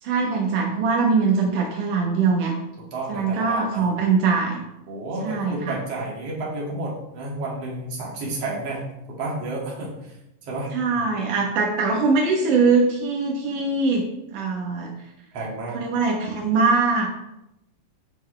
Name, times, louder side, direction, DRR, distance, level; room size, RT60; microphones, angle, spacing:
voice 1, 0.0-2.5 3.1-4.6 5.2-5.8 10.7-14.0 14.3-14.9 15.7-17.1, right 4 dB, 85° right, 0 dB, 1.8 m, -22 dB
voice 2, 2.8-3.9 4.9-8.8 9.1-10.1 10.4-10.7 15.3-15.8, right 2 dB, 45° right, -4 dB, 2.3 m, -31 dB
9.9 x 7.2 x 3.3 m, 0.87 s
omnidirectional pair, 5.4 m